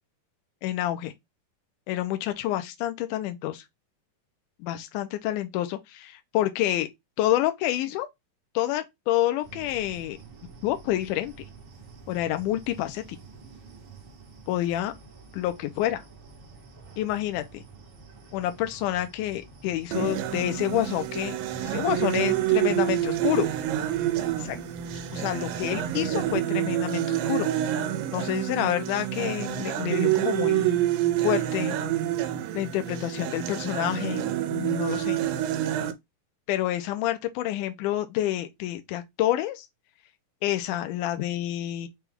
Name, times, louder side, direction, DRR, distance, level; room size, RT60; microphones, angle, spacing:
voice 1, 0.6-1.1 1.9-3.6 4.6-6.9 7.2-8.1 8.6-10.2 10.6-11.3 12.1-13.2 14.5-14.9 15.3-16.0 17.0-17.6 18.3-21.4 21.6-23.5 24.4-24.6 25.1-27.5 28.1-30.8 31.2-31.8 32.5-34.2 34.5-35.2 36.5-39.7 40.4-41.9, left 13 dB, 80° left, 2.0 m, -28 dB
sound 1, 9.4-26.4, right 4 dB, 60° right, 1.3 m, -49 dB
sound 2, 19.9-35.9, right 12 dB, 85° right, 2.4 m, -27 dB
6.2 x 2.3 x 3.4 m
omnidirectional pair, 4.0 m